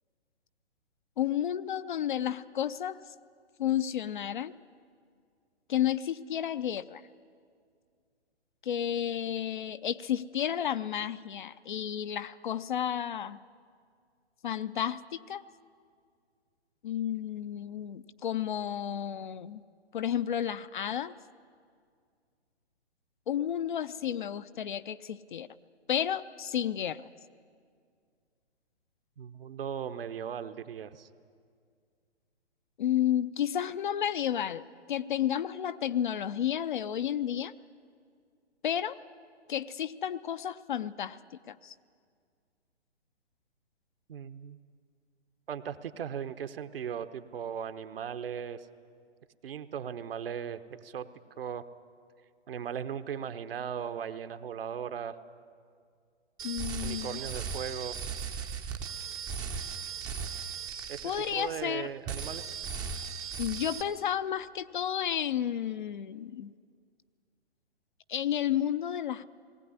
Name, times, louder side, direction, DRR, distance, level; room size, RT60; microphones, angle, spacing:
voice 1, 1.2-3.0 3.6-4.5 5.7-7.0 8.6-13.4 14.4-15.4 16.8-19.6 19.9-21.1 23.3-25.5 25.9-27.0 32.8-34.6 34.9-37.5 38.6-39.0 39.5-41.2 41.5-41.7 56.4-57.2 61.0-61.9 63.4-66.5 68.1-69.2, left 10 dB, 45° left, 13 dB, 0.6 m, -31 dB
voice 2, 29.2-31.1 44.1-44.6 45.5-48.7 49.4-51.1 51.4-51.6 52.5-55.2 56.8-58.0 60.9-62.6, right 8 dB, 55° right, 11 dB, 1.0 m, -38 dB
sound 1, 56.4-61.8 62.1-63.8, right 6 dB, 10° right, 0.6 m, -37 dB
19.0 x 16.5 x 9.7 m, 2.1 s
figure-of-eight pair, 135°, 35 cm